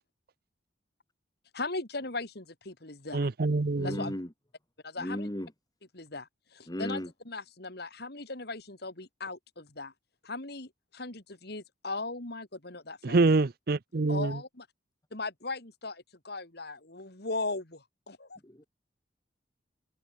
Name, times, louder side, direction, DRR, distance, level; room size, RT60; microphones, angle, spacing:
voice 1, 1.5-3.3 3.8-4.1 4.8-5.3 5.9-7.0 7.3-9.9 10.2-13.2 14.1-14.6 15.1-18.4, left 3 dB, 60° left, 2.9 m, -38 dB
voice 2, 3.1-3.9 13.0-14.3, right 3 dB, 55° right, 0.6 m, -25 dB
voice 3, 3.8-4.3 5.0-5.5 6.7-7.1 18.4-18.6, equal, 20° left, 2.2 m, -35 dB
head